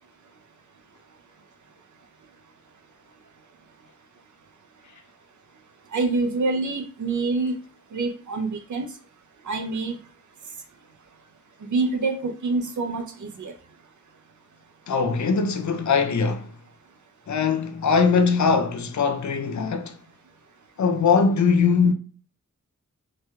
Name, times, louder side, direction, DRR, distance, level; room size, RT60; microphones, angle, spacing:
voice 1, 5.9-7.6 7.9-8.9 9.5-10.0 11.7-13.5, right 3 dB, 65° right, 0.6 m, -26 dB
voice 2, 14.9-16.5 17.3-20.0 20.8-21.9, left 5 dB, 60° left, 0.5 m, -21 dB
3.2 x 2.8 x 2.3 m
cardioid pair, 50°, 32 cm